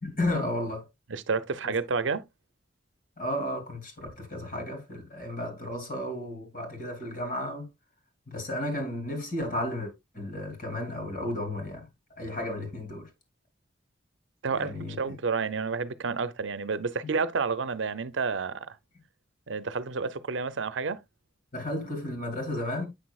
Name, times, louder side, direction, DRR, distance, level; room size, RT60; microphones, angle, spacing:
voice 1, 0.0-0.9 3.2-7.7 8.3-11.9 12.2-13.1 14.5-15.0 21.5-22.9, left 1 dB, 50° left, 3.0 m, -33 dB
voice 2, 1.1-2.2 14.4-18.8 19.5-21.0, right 4 dB, 80° right, 0.6 m, -30 dB
8.0 x 6.2 x 2.3 m
head